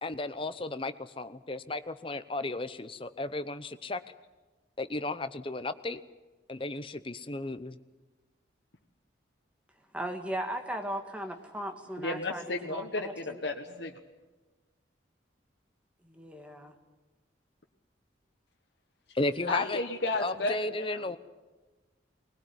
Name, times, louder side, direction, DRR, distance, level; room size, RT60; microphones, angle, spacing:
voice 1, 0.0-4.0 4.8-6.0 6.5-7.8 19.1-19.8 20.2-21.2, left 2 dB, 30° left, 12 dB, 0.8 m, -34 dB
voice 2, 9.9-12.4 12.7-13.4 16.0-16.7, right 1 dB, 5° right, 4 dB, 1.9 m, -37 dB
voice 3, 12.0-14.0 19.5-21.1, left 2 dB, 65° left, 2 dB, 1.4 m, -33 dB
21.0 x 20.0 x 9.6 m, 1.2 s
head